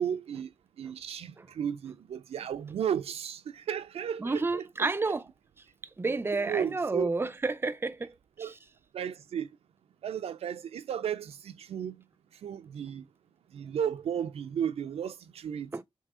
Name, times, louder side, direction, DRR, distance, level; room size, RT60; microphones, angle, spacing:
voice 1, 0.0-4.6 6.5-7.1 8.4-8.5 8.9-9.5 10.0-12.0 12.4-13.0 13.5-15.7, right 8 dB, 90° right, 0.4 m, -34 dB
voice 2, 4.2-5.3 6.0-8.6 15.7-15.8, right 3 dB, 20° right, 0.5 m, -30 dB
3.6 x 2.7 x 4.7 m
cardioid pair, 75°, 10 cm